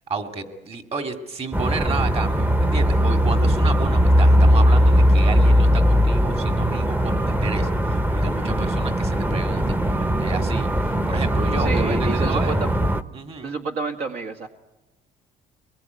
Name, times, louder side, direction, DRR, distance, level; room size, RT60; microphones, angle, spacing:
voice 1, 0.1-12.6 13.1-13.5, right 4 dB, 35° right, 6 dB, 2.4 m, -32 dB
sound 1, 1.5-13.0, equal, 10° right, 0.8 m, -19 dB
voice 2, 11.6-12.7 13.4-14.5, right 3 dB, 70° right, 3 dB, 2.0 m, -29 dB
23.5 x 21.0 x 9.4 m, 1.0 s
cardioid pair, 110°, 17 cm